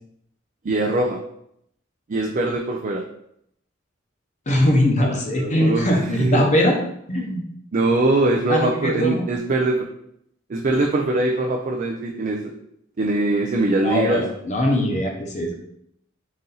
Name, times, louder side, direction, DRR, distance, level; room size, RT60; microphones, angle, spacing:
voice 1, 0.6-1.2 2.1-3.0 5.4-6.4 7.7-9.9 10.5-12.5 13.0-14.2, right 2 dB, 40° right, 0 dB, 0.4 m, -22 dB
voice 2, 4.5-6.7 7.1-7.4 8.5-9.2 13.8-15.5, left 1 dB, 35° left, 1 dB, 0.8 m, -21 dB
4.1 x 2.6 x 3.9 m, 0.73 s
head